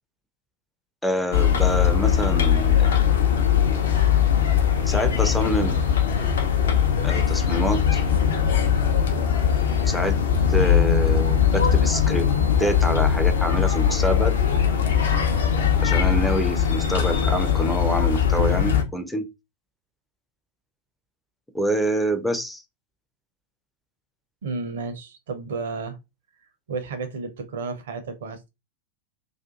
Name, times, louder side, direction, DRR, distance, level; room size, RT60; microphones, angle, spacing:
voice 1, 1.0-2.9 4.8-5.8 7.0-8.0 9.9-10.2 10.5-12.3 12.6-14.3 15.8-19.3 21.5-22.6, equal, 5° left, 0.4 m, -26 dB
sound 1, 1.3-18.8, left 8 dB, 65° left, 0.6 m, -20 dB
voice 2, 24.4-26.0 26.7-28.5, right 4 dB, 60° right, 0.6 m, -32 dB
2.6 x 2.4 x 2.4 m
figure-of-eight pair, 90°, 0 cm